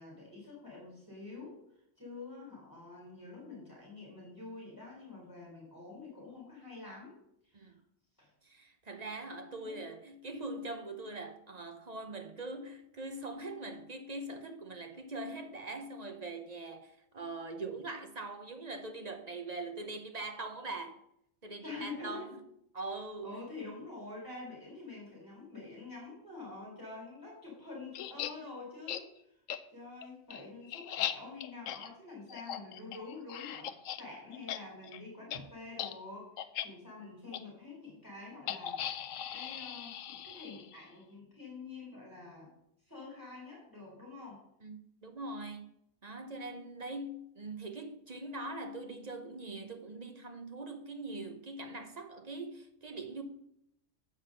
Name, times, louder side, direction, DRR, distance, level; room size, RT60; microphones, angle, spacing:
voice 1, 0.0-1.6 2.0-7.2 7.5-7.7 8.2-8.3 9.6-9.9 21.6-22.4 23.2-29.1 29.7-36.3 36.6-38.8 39.3-42.5 42.9-44.4, left 3 dB, 15° left, 3.8 m, -47 dB
voice 2, 8.4-21.0 21.4-22.3 22.7-23.3 35.3-35.4 44.6-45.7 46.0-53.2, right 2 dB, 35° right, 0.8 m, -42 dB
sound 1, 27.9-28.3 28.9-29.0 29.5-29.6 30.0-34.0 34.3-34.6 34.8-35.0 35.3-35.4 35.7-35.9 36.4-36.7 37.3-37.4 38.5-40.8, left 10 dB, 85° left, 1.0 m, -39 dB
7.5 x 6.1 x 6.5 m
omnidirectional pair, 1.3 m